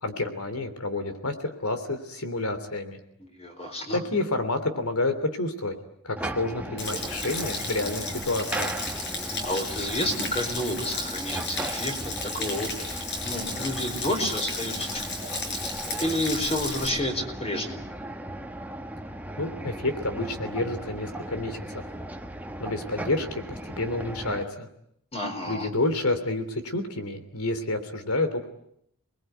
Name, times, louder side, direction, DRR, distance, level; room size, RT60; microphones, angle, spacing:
voice 1, 0.0-3.0 3.9-5.8 6.0-8.7 19.4-21.8 22.6-24.7 25.5-28.4, left 2 dB, 80° left, 10 dB, 3.3 m, -29 dB
voice 2, 3.2-4.0 9.4-12.7 13.2-15.0 16.0-17.8 25.1-25.7, left 1 dB, 30° left, 4 dB, 4.5 m, -30 dB
sound 1, 6.2-24.4, right 1 dB, 5° right, 1.2 m, -37 dB
Stream / Splash splatter / Trickle dribble, 6.8-16.9, left 3 dB, 50° left, 6.6 m, -34 dB
29.0 x 21.0 x 9.3 m, 0.71 s
head